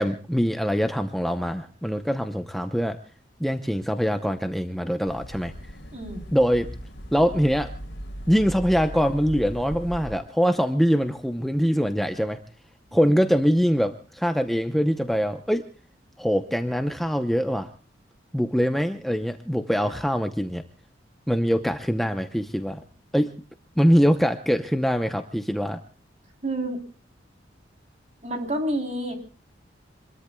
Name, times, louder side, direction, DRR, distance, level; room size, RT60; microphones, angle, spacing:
voice 1, 0.0-3.0 3.4-5.5 6.3-6.7 7.1-7.7 8.3-12.4 12.9-15.7 16.2-17.7 18.3-20.6 21.3-22.8 23.1-23.3 23.8-25.8, equal, ahead, 6 dB, 0.7 m, -23 dB
sound 1, 5.1-10.1, equal, 65° left, 3.4 m, -38 dB
voice 2, 26.4-26.8 28.2-29.1, right 1 dB, 40° right, 4 dB, 3.5 m, -29 dB
26.5 x 21.5 x 2.3 m, 0.37 s
head